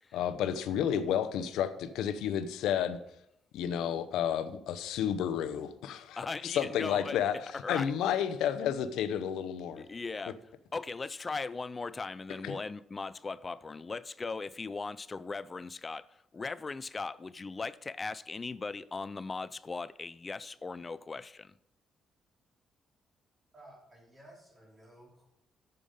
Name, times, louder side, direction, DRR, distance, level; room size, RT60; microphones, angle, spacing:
voice 1, 0.1-3.0 3.5-9.8 12.4-12.6, left 9 dB, 85° left, 0.7 m, -31 dB
voice 2, 6.2-7.2 7.6-7.9 9.8-10.4 10.7-21.5, left 4 dB, 30° left, 0.3 m, -38 dB
voice 3, 23.5-25.3, right 1 dB, 30° right, 2.8 m, -55 dB
8.9 x 6.9 x 5.1 m
cardioid pair, 90°, 0 cm